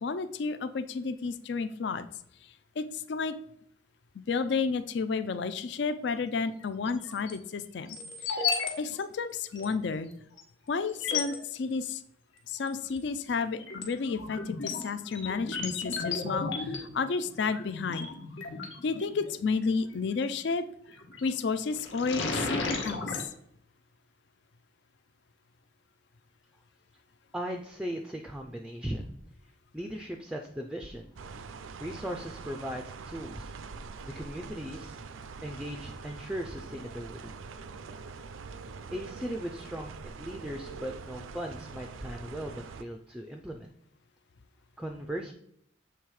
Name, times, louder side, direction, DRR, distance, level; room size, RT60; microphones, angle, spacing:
voice 1, 0.0-2.1 2.8-3.4 4.3-8.0 8.2-10.1 10.7-12.0 12.5-18.1 18.8-20.6 21.2-23.3, left 4 dB, 60° left, 12 dB, 0.4 m, -31 dB
sound 1, 6.9-7.3 7.9-8.7 9.0-9.1 9.5-9.7 10.4-10.5 10.9-11.4 12.6-13.0 13.4-19.3 20.9-21.3 21.7-23.2, left 4 dB, 75° left, 1.2 m, -34 dB
voice 2, 27.3-29.1 29.7-31.1 31.8-33.5 34.0-35.0 35.4-37.4 38.9-43.7 44.8-45.3, equal, 5° right, 3 dB, 0.4 m, -38 dB
sound 2, 31.2-42.8, right 4 dB, 85° right, 0.5 m, -44 dB
7.1 x 3.4 x 4.7 m, 0.71 s
head